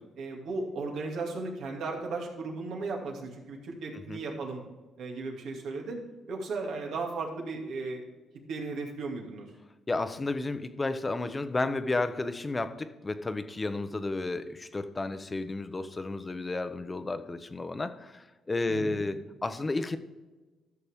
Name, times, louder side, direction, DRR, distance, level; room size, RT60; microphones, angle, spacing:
voice 1, 0.2-4.6 5.0-6.0 6.3-8.0 8.5-9.5 18.7-19.0, right 3 dB, 75° right, 0 dB, 2.3 m, -35 dB
voice 2, 9.9-20.0, left 2 dB, 25° left, 10 dB, 0.8 m, -32 dB
13.0 x 6.6 x 3.6 m, 1.2 s
cardioid pair, 90°, 0 cm